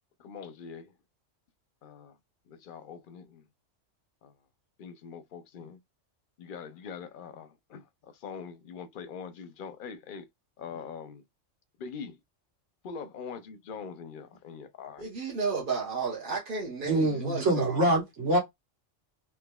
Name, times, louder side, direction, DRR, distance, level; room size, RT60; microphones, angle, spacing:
voice 1, 0.2-0.9 1.8-2.2 2.5-3.5 4.2-4.3 4.8-5.8 6.4-10.3 10.6-11.2 11.8-12.2 12.8-15.0 16.9-17.2 17.7-17.8, left 6 dB, 55° left, 0.7 m, -43 dB
voice 2, 15.0-17.8, right 4 dB, 45° right, 1.1 m, -32 dB
voice 3, 16.9-18.4, right 1 dB, 75° right, 1.7 m, -25 dB
3.8 x 3.0 x 2.3 m
omnidirectional pair, 1.3 m